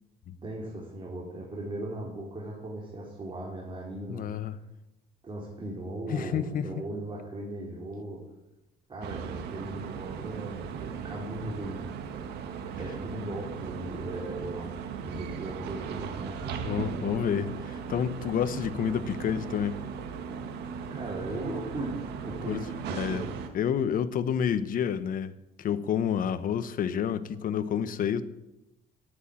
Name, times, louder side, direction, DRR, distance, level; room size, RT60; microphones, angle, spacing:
voice 1, 0.4-4.3 5.2-8.2 8.9-11.8 12.8-16.9 20.9-23.3, right 1 dB, 30° right, -4 dB, 4.2 m, -38 dB
voice 2, 4.1-4.6 6.1-6.8 15.1-15.2 16.6-19.8 22.5-22.6 22.9-23.3 23.5-25.3 25.6-28.2, left 8 dB, 55° left, 12 dB, 1.1 m, -29 dB
sound 1, 9.0-23.5, right 6 dB, 75° right, 1.8 m, -37 dB
13.0 x 9.8 x 8.7 m, 0.94 s
cardioid pair, 110°, 17 cm